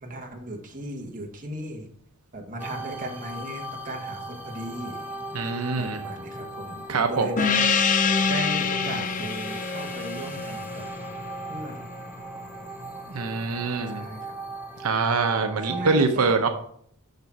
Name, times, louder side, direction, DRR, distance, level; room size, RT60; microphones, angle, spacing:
voice 1, 0.0-1.9 2.3-5.0 5.7-7.8 8.3-10.9 11.5-11.9 13.9-14.4 15.7-16.3, right 1 dB, 40° right, 1 dB, 1.4 m, -36 dB
sound 1, 2.6-16.0, right 2 dB, 10° right, 0.7 m, -38 dB
voice 2, 5.3-6.0 6.9-7.3 13.1-14.0 14.8-16.5, right 4 dB, 85° right, 5 dB, 0.8 m, -24 dB
Gong, 7.4-12.4, left 5 dB, 35° left, 0.4 m, -26 dB
6.7 x 6.0 x 4.7 m, 0.64 s
head